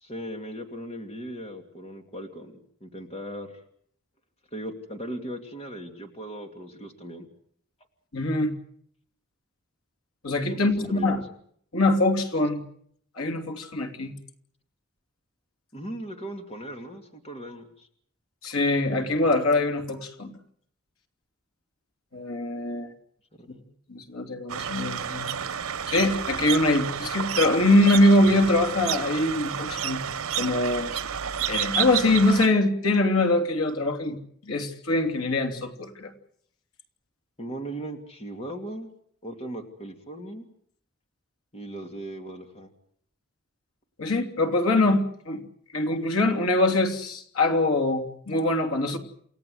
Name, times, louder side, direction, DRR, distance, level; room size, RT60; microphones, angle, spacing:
voice 1, 0.0-3.5 4.5-7.3 10.5-11.2 15.7-17.9 23.4-23.7 37.4-38.9 39.2-40.5 41.5-42.7, right 1 dB, 30° left, 4 dB, 2.5 m, -38 dB
voice 2, 8.1-8.5 10.2-11.2 11.7-12.6 13.2-14.1 18.4-20.3 22.1-22.9 23.9-25.4 25.9-30.0 30.4-30.9 31.5-34.2 34.4-36.1 44.0-45.4 45.7-49.0, left 2 dB, 90° left, 5 dB, 3.1 m, -23 dB
sound 1, 24.5-32.5, right 8 dB, 90° right, 1.0 m, -30 dB
29.0 x 17.0 x 8.0 m, 0.65 s
head